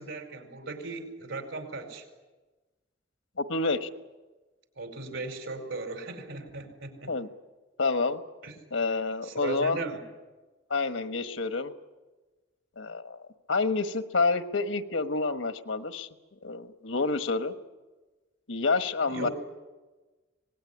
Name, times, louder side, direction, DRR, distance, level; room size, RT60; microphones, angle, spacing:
voice 1, 0.0-2.0 4.8-7.1 8.4-8.5 8.9-9.0 9.2-10.0 19.1-19.3, right 3 dB, 90° right, 5 dB, 5.0 m, -37 dB
voice 2, 3.4-3.9 7.1-7.3 7.8-8.2 8.7-9.9 10.7-11.7 12.8-16.1 16.4-17.5 18.5-19.3, left 3 dB, 85° left, 9 dB, 1.3 m, -28 dB
25.0 x 19.5 x 9.8 m, 1.2 s
head